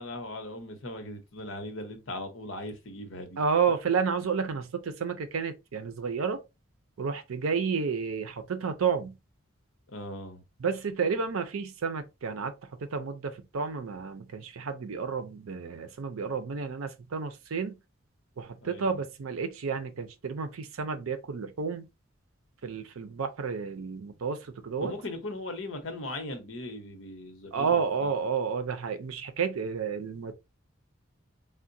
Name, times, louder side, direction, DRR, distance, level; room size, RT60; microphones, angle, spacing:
voice 1, 0.0-3.4 9.9-10.4 18.6-19.0 24.8-28.1, left 1 dB, 70° left, 0.8 m, -39 dB
voice 2, 3.4-6.4 7.0-9.1 10.6-12.5 12.8-17.7 18.4-21.8 22.6-24.9 27.5-30.3, right 5 dB, 85° right, 0.5 m, -31 dB
3.6 x 2.1 x 2.6 m
head